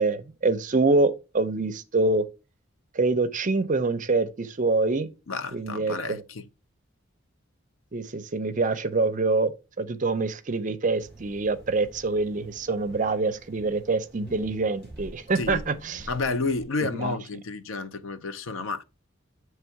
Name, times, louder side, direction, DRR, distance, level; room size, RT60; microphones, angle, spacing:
voice 1, 0.0-2.2 2.9-5.1 5.5-6.2 7.9-9.5 9.8-16.1 17.0-17.2, right 3 dB, 40° right, 0.5 m, -25 dB
voice 2, 5.3-6.5 15.4-15.6 16.1-18.8, left 3 dB, 75° left, 0.6 m, -30 dB
sound 1, 11.0-16.6, right 1 dB, 5° left, 3.0 m, -46 dB
7.9 x 3.3 x 4.5 m
head